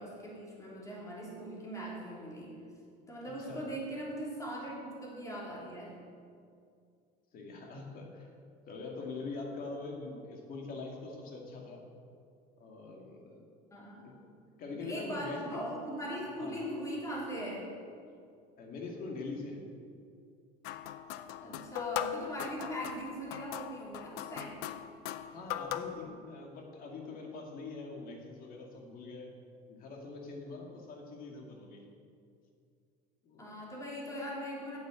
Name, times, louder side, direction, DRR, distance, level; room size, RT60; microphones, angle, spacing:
voice 1, 0.0-2.6 3.1-6.0 13.7-14.4 14.7-17.7 21.4-24.7 33.4-34.8, equal, 15° left, -4 dB, 3.3 m, -40 dB
voice 2, 7.3-8.3 8.7-11.8 12.6-13.4 14.0-14.1 14.6-15.4 16.4-16.5 18.6-19.6 25.2-29.3 29.7-31.8 33.2-33.5, left 3 dB, 45° left, 1 dB, 2.3 m, -43 dB
sound 1, 20.6-26.1, left 11 dB, 90° left, 0.6 m, -39 dB
9.0 x 8.0 x 7.7 m, 2.4 s
cardioid pair, 130°, 20 cm